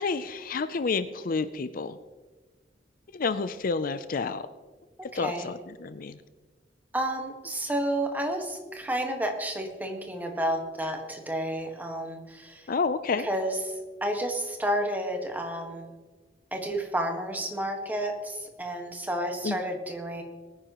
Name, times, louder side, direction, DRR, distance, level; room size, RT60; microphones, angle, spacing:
voice 1, 0.0-2.0 3.1-4.4 5.1-6.2 12.7-13.3 19.4-19.6, left 4 dB, 50° left, 12 dB, 0.5 m, -29 dB
voice 2, 5.0-5.5 6.9-12.7 13.2-15.9 16.5-20.2, right 1 dB, 10° right, 3 dB, 1.5 m, -31 dB
21.5 x 9.7 x 3.0 m, 1.3 s
head